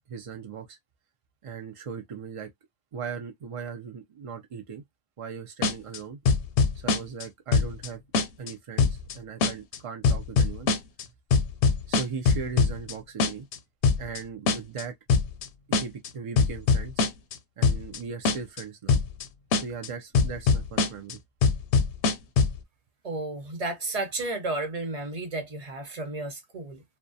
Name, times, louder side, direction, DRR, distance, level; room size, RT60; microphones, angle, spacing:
voice 1, 0.1-0.8 1.4-2.5 2.9-4.8 5.2-6.2 6.8-8.0 8.4-10.7 11.9-13.5 14.0-14.9 15.7-17.0 17.6-19.0 19.5-21.2, right 6 dB, 60° right, 0.3 m, -38 dB
sound 1, 5.6-6.0 6.3-7.2 7.5-7.9 8.1-8.5 8.8-9.1 9.4-9.8 10.0-11.0 11.3-12.9 13.2-13.6 13.8-14.2 14.5-14.8 15.1-15.5 15.7-16.1 16.4-17.3 17.6-18.0 18.3-18.6 18.9-19.2 19.5-19.9 20.1-21.1 21.4-22.6, left 4 dB, 85° left, 0.9 m, -22 dB
voice 2, 23.0-26.8, right 2 dB, 40° right, 0.7 m, -32 dB
2.3 x 2.2 x 2.6 m
omnidirectional pair, 1.1 m